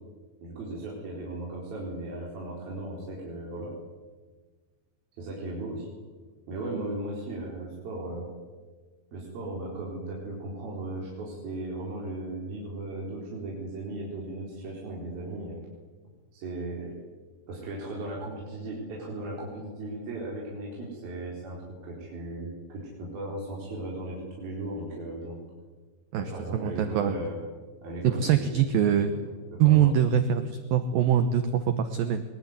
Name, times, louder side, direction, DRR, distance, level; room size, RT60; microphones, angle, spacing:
voice 1, 0.4-3.7 5.2-5.9 6.5-8.3 9.1-15.6 16.3-16.9 17.5-25.4 26.2-27.4 27.8-28.7 29.0-29.1 29.5-29.9, right 2 dB, 55° right, -4 dB, 6.0 m, -36 dB
voice 2, 26.1-27.1 28.0-29.1 29.6-32.2, right 9 dB, 70° right, 9 dB, 2.4 m, -23 dB
23.5 x 20.5 x 9.7 m, 1.4 s
omnidirectional pair, 5.3 m